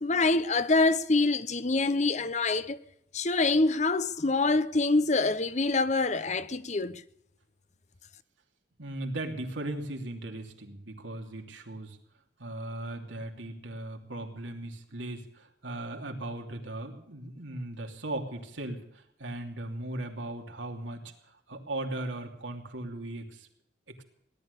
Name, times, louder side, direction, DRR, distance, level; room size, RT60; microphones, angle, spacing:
voice 1, 0.0-2.8 3.1-7.0, left 3 dB, 40° left, 0.8 m, -25 dB
voice 2, 8.8-12.0 12.4-21.1 21.5-23.5 24.0-24.1, right 1 dB, 85° right, 2.9 m, -38 dB
18.0 x 12.0 x 6.7 m
head